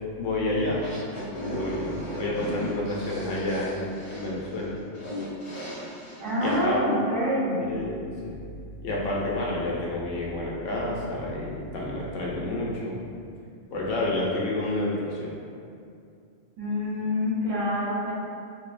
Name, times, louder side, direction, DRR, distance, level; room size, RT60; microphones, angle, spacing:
voice 1, 0.2-0.8 1.3-4.8 6.4-6.8 7.6-8.5 8.8-13.0 13.7-15.3, left 1 dB, 80° left, -4 dB, 0.9 m, -29 dB
sound 1, 0.8-6.6, equal, 30° left, 0.7 m, -36 dB
voice 2, 6.2-7.6 16.6-18.1, equal, 80° right, -8 dB, 1.1 m, -26 dB
2.7 x 2.1 x 2.4 m, 2.3 s
omnidirectional pair, 1.3 m